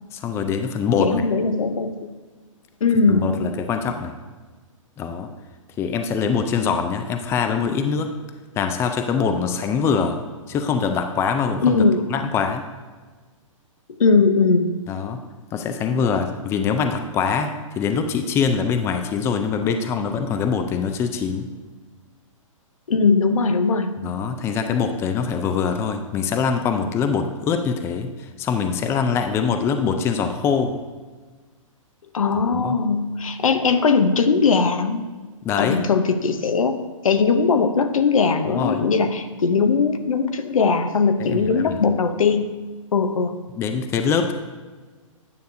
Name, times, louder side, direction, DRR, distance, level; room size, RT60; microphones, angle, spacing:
voice 1, 0.1-1.3 3.1-4.1 5.0-5.3 5.8-8.1 8.6-10.2 10.5-11.8 12.1-12.7 14.9-15.2 15.5-21.5 24.0-30.7 32.5-32.8 35.4-35.8 38.4-38.8 41.2-41.8 43.6-44.3, left 6 dB, 15° left, 7 dB, 0.4 m, -23 dB
voice 2, 1.0-2.2 2.8-3.3 11.6-12.1 14.0-14.8 22.9-23.9 32.1-35.1 35.6-36.8 37.0-42.5 42.9-43.3, left 4 dB, 85° left, 9 dB, 0.7 m, -19 dB
9.5 x 6.6 x 2.6 m, 1.4 s
hypercardioid pair, 130°, 17 cm